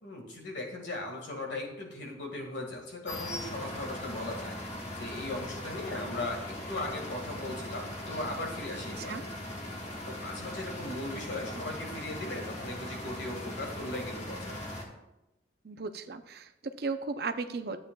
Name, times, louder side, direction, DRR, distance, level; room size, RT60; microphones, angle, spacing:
voice 1, 0.0-4.6 5.0-9.2 10.0-14.9, left 2 dB, 70° left, 1 dB, 1.9 m, -38 dB
sound 1, 3.1-14.8, left 1 dB, 35° left, 1.5 m, -40 dB
voice 2, 15.6-17.8, right 4 dB, 55° right, 8 dB, 0.6 m, -36 dB
11.5 x 8.6 x 2.3 m, 0.94 s
head